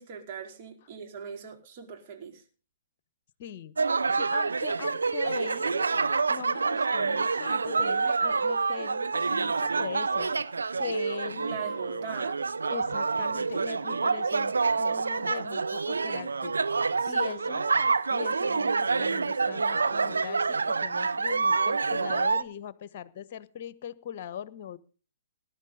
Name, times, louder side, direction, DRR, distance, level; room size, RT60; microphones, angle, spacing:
voice 1, 0.0-2.4 11.4-12.4 17.0-17.4, right 6 dB, 40° right, 2 dB, 4.6 m, -40 dB
voice 2, 3.4-3.7 4.1-5.8 6.3-10.3 10.8-11.7 12.7-16.6 17.1-17.7 18.1-24.8, left 9 dB, 40° left, 17 dB, 1.1 m, -40 dB
sound 1, 3.8-22.4, right 4 dB, 70° right, 0.8 m, -27 dB
20.0 x 11.0 x 4.0 m, 0.38 s
figure-of-eight pair, 120°, 0 cm